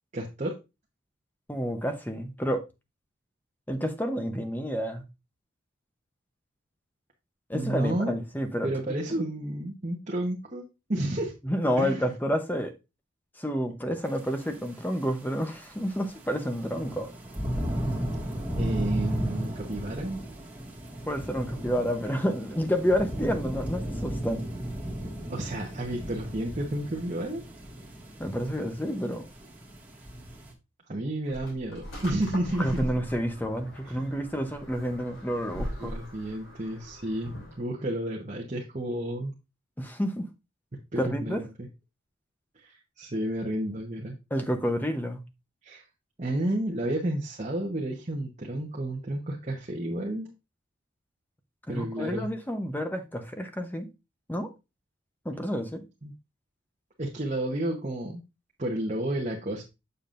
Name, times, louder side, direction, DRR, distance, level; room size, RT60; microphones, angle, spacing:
voice 1, 0.1-0.5 7.5-8.2 8.6-11.3 11.8-12.1 18.6-20.2 25.3-27.4 30.9-32.8 33.8-33.9 35.8-39.3 40.9-41.7 42.6-44.2 45.6-45.8 46.2-50.3 51.7-52.3 56.0-56.1 57.0-58.2 58.6-59.6, right 1 dB, 35° right, 1.0 m, -31 dB
voice 2, 1.5-2.6 3.7-5.0 7.5-8.7 11.4-12.7 13.4-17.1 21.1-24.5 28.2-29.2 32.6-35.9 39.8-40.3 41.0-41.5 44.3-45.2 51.7-53.9 54.3-54.5 55.2-55.9, equal, 10° left, 0.8 m, -29 dB
sound 1, 14.2-14.3 15.3-30.5, right 1 dB, 10° right, 1.8 m, -35 dB
sound 2, 31.3-37.6, equal, 65° left, 3.1 m, -41 dB
7.3 x 6.7 x 2.5 m
head